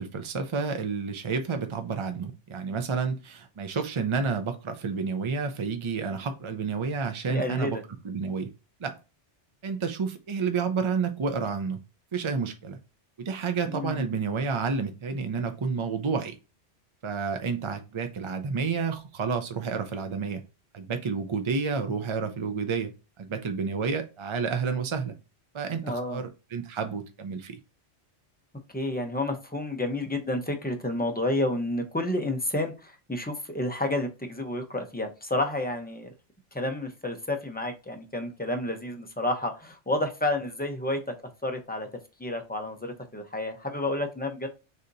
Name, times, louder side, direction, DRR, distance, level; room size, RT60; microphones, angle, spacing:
voice 1, 0.0-7.8 8.0-8.5 8.8-9.0 9.6-11.8 12.1-12.8 13.2-16.4 17.0-20.4 20.7-22.9 23.2-25.1 25.5-27.6, right 5 dB, 50° right, 7 dB, 0.3 m, -30 dB
voice 2, 7.3-7.8 13.6-14.1 25.8-26.2 28.7-36.1 36.5-41.1 41.4-41.9 42.2-44.5, left 1 dB, 10° left, 4 dB, 0.5 m, -30 dB
6.5 x 2.8 x 2.6 m, 0.29 s
omnidirectional pair, 1.3 m